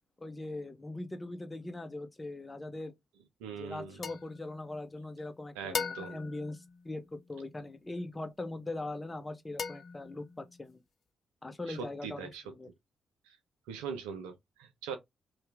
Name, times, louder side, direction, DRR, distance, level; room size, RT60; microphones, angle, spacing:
voice 1, 0.2-2.9 3.5-10.8 11.4-12.7, left 2 dB, 25° left, 0.8 m, -41 dB
voice 2, 3.4-4.0 5.6-6.2 11.7-12.4 13.3-13.4 13.7-15.0, right 6 dB, 85° right, 0.6 m, -41 dB
sound 1, 4.0-5.3 5.7-7.6 9.6-10.6, left 6 dB, 55° left, 0.4 m, -40 dB
2.8 x 2.5 x 3.3 m
hypercardioid pair, 45°, 0 cm